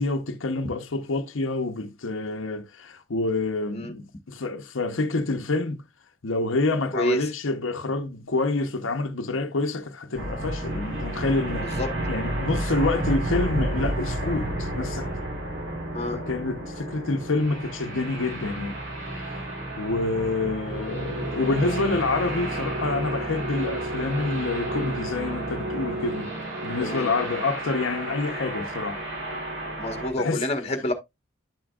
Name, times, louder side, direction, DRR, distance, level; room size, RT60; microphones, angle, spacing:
voice 1, 0.0-5.8 6.2-11.8 12.1-15.1 16.1-18.8 19.1-19.4 19.8-26.3 26.6-29.0 30.2-30.4, left 3 dB, 80° left, 0.8 m, -27 dB
voice 2, 6.9-7.3 11.6-11.9 15.9-16.2 26.8-27.1 29.8-30.9, left 1 dB, 30° left, 1.3 m, -28 dB
sound 1, 10.2-30.1, right 1 dB, 65° right, 3.0 m, -31 dB
10.0 x 6.1 x 2.3 m
head